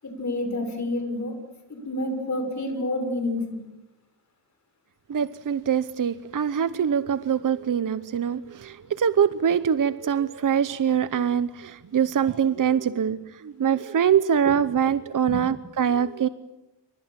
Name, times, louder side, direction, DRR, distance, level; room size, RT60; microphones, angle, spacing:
voice 1, 0.0-1.4 1.7-3.6 15.3-15.4, left 1 dB, 40° left, 5 dB, 6.7 m, -29 dB
voice 2, 5.1-16.3, right 8 dB, 45° right, 13 dB, 0.9 m, -24 dB
29.0 x 25.5 x 7.6 m, 0.97 s
wide cardioid pair, 150°, 44 cm